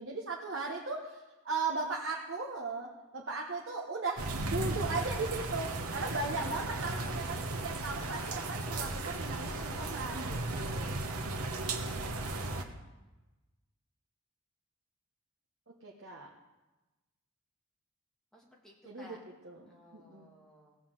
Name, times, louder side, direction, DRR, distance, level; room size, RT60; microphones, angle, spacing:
voice 1, 0.0-11.0 15.7-16.3 18.9-19.2 19.4-20.3, right 3 dB, 60° right, -2 dB, 1.3 m, -37 dB
sound 1, 4.2-12.6, right 2 dB, 85° right, 1.2 m, -36 dB
voice 2, 18.3-19.2 19.7-20.8, equal, ahead, -3 dB, 2.1 m, -56 dB
17.5 x 5.9 x 7.5 m, 1.1 s
head